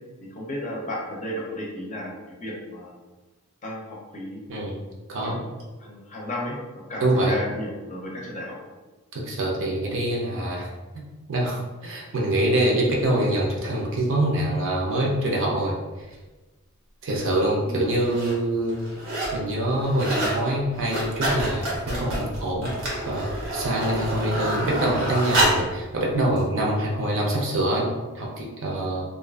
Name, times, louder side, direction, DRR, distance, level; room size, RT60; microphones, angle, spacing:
voice 1, 0.2-2.9 3.6-4.4 5.2-5.4 5.8-8.5 17.7-17.9, left 1 dB, 35° left, -2 dB, 0.5 m, -34 dB
voice 2, 7.0-7.3 9.1-10.7 10.9-15.7 17.0-18.7 19.3-23.2 23.5-27.9 28.1-29.0, right 1 dB, 60° right, -2 dB, 0.6 m, -25 dB
sound 1, 17.1-17.2 17.9-18.4 18.7-19.4 19.7-20.4 20.7-25.7 26.4-26.5, right 1 dB, 90° right, 0.9 m, -27 dB
2.5 x 2.4 x 2.3 m, 1.2 s
head